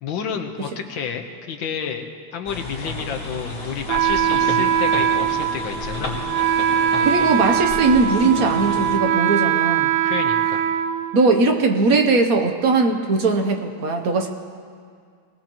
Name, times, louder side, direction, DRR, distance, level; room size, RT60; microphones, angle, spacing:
voice 1, 0.0-6.2 10.0-10.6, left 7 dB, 70° left, 5 dB, 1.7 m, -30 dB
sound 1, 2.5-9.0, left 1 dB, 45° left, 3.2 m, -32 dB
Wind instrument woodwind instrument, 3.9-11.6, right 9 dB, 75° right, 1.2 m, -21 dB
voice 2, 7.0-9.9 11.1-14.3, right 3 dB, 55° right, 5 dB, 1.1 m, -19 dB
20.0 x 19.5 x 3.0 m, 2.2 s
omnidirectional pair, 2.3 m